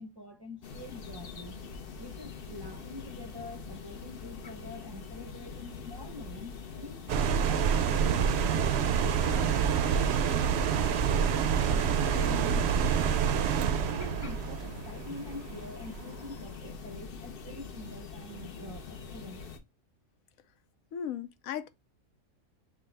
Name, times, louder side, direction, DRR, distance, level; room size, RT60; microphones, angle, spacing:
voice 1, 0.0-1.6 2.0-7.0 7.4-19.5, left 1 dB, 30° right, 0.5 m, -45 dB
sound 1, 0.6-19.6, left 5 dB, 50° left, 0.8 m, -44 dB
sound 2, 7.1-16.1, right 7 dB, 65° right, 0.7 m, -27 dB
voice 2, 20.9-21.7, left 9 dB, 85° left, 1.0 m, -36 dB
6.1 x 2.2 x 3.2 m
omnidirectional pair, 1.4 m